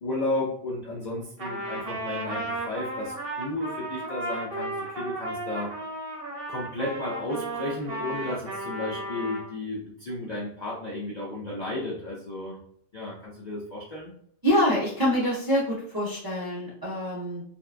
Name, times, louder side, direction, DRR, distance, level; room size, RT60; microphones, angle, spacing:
voice 1, 0.0-5.7 6.5-12.6 12.9-14.1, left 2 dB, 55° left, -5 dB, 0.4 m, -33 dB
Trumpet, 1.4-9.5, right 1 dB, 55° right, 1.0 m, -34 dB
voice 2, 14.4-17.4, equal, 30° right, -6 dB, 0.4 m, -25 dB
2.7 x 2.2 x 2.4 m, 0.66 s
omnidirectional pair, 1.3 m